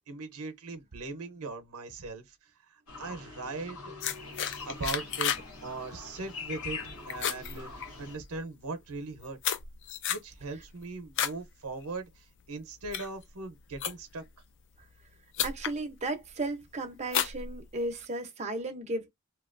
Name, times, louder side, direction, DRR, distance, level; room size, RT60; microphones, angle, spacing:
voice 1, 0.1-4.3 4.7-5.3 5.6-9.4 10.1-14.2, right 3 dB, 75° right, 0.7 m, -40 dB
sound 1, 2.9-8.2, left 4 dB, 80° left, 1.1 m, -43 dB
sound 2, 4.0-5.5 5.8-6.1 6.5-6.8 7.1-8.3 8.9-11.4 11.8-12.2 12.7-14.3 15.0-15.1 15.3-15.8 16.3-16.6 17.1-18.1, left 9 dB, 55° left, 0.4 m, -33 dB
voice 2, 15.4-19.1, right 2 dB, 30° right, 0.7 m, -35 dB
2.9 x 2.2 x 2.4 m
head